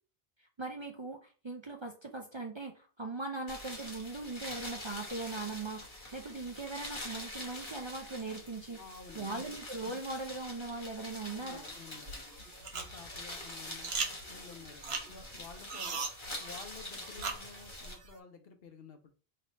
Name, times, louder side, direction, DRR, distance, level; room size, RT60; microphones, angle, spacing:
voice 1, 0.4-8.8 9.1-11.6, right 3 dB, 35° right, 2 dB, 0.5 m, -40 dB
sound 1, 3.5-17.9, left 1 dB, 30° left, 1.1 m, -45 dB
voice 2, 8.8-9.6 11.3-12.2 12.7-13.9 14.3-16.1 16.4-19.1, left 5 dB, 70° left, 6 dB, 1.0 m, -52 dB
sound 2, 11.7-18.2, right 4 dB, 80° right, 1.1 m, -41 dB
3.3 x 2.9 x 4.0 m, 0.37 s
omnidirectional pair, 1.0 m